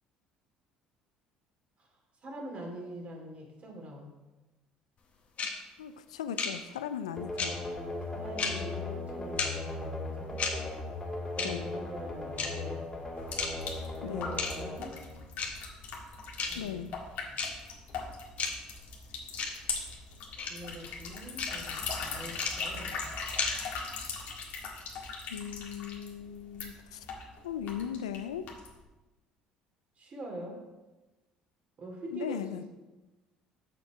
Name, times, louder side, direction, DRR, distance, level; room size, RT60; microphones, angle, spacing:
voice 1, 2.2-4.2 7.3-10.4 11.4-12.9 14.0-15.0 16.5-16.8 17.2-17.5 20.5-23.0 30.0-30.6 31.8-32.7, right 1 dB, 45° right, 0 dB, 2.6 m, -44 dB
sound 1, 5.4-5.5 6.4-6.5 7.4-7.5 8.4-8.5 9.4-9.5 10.4-10.5 11.4-11.5 12.4-12.5 13.4-13.5 14.4-14.5 15.4-15.5 16.4-16.5 17.4-17.5 18.4-18.5 19.4-19.5 20.4-20.5 21.4-21.5 22.4-22.5 23.4-23.5, left 5 dB, 45° left, 1.5 m, -31 dB
voice 2, 5.8-7.5 11.4-11.7 14.0-14.3 16.6-16.9 25.3-27.0 27.4-28.5 32.1-32.6, left 9 dB, 90° left, 11 dB, 0.4 m, -38 dB
sound 2, 7.2-15.9, left 2 dB, 15° left, 2.4 m, -38 dB
sound 3, 13.2-28.8, left 4 dB, 65° left, 1.8 m, -40 dB
6.9 x 6.7 x 4.9 m, 1.1 s
hypercardioid pair, 65°, 3 cm